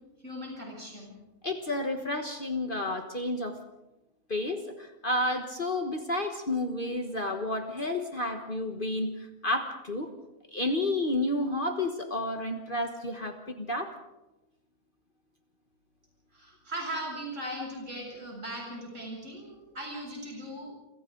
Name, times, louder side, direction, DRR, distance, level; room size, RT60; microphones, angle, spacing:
voice 1, 0.2-1.1 16.3-20.7, right 1 dB, 55° right, -1 dB, 8.2 m, -38 dB
voice 2, 1.4-3.6 4.3-10.1 10.5-13.9, left 1 dB, 35° left, 5 dB, 1.5 m, -31 dB
28.5 x 26.0 x 3.9 m, 1.0 s
omnidirectional pair, 1.6 m